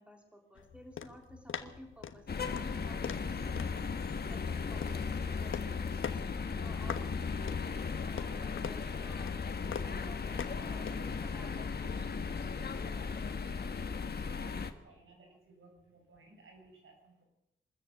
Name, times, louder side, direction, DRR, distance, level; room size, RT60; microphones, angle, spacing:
voice 1, 0.0-13.8 14.8-15.4, equal, 5° right, 3 dB, 3.4 m, -55 dB
sound 1, 0.5-14.7, left 7 dB, 80° left, 1.3 m, -46 dB
sound 2, 2.3-14.7, left 5 dB, 55° left, 1.4 m, -36 dB
voice 2, 14.3-17.2, right 2 dB, 85° right, 2 dB, 6.6 m, -59 dB
24.0 x 14.0 x 8.4 m, 0.90 s
wide cardioid pair, 135°, 20 cm